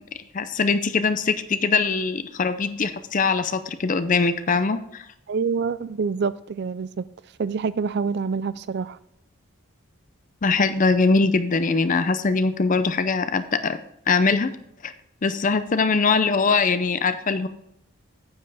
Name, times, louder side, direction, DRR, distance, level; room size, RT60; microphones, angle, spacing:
voice 1, 0.3-5.0 10.4-13.8 14.1-14.5 14.8-14.9 15.2-17.5, left 4 dB, 35° left, 0.5 m, -22 dB
voice 2, 5.3-7.0 7.4-9.0, right 5 dB, 50° right, 0.4 m, -26 dB
9.5 x 7.7 x 3.4 m
head